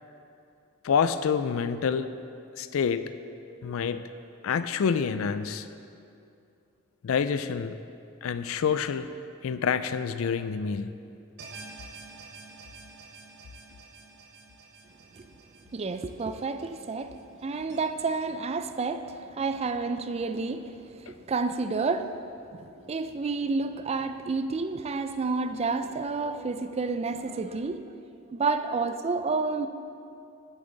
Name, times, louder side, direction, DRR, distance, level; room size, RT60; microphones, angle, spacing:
voice 1, 0.8-2.1 2.6-3.1 3.6-4.0 4.4-5.7 7.0-7.8 8.2-9.1 9.4-11.0, left 6 dB, 75° left, 12 dB, 0.4 m, -27 dB
sound 1, 11.4-17.8, right 4 dB, 55° right, 1.2 m, -49 dB
voice 2, 15.7-22.1 22.5-27.8 28.3-29.7, right 4 dB, 30° right, 10 dB, 0.4 m, -30 dB
13.0 x 7.1 x 3.9 m, 2.6 s
head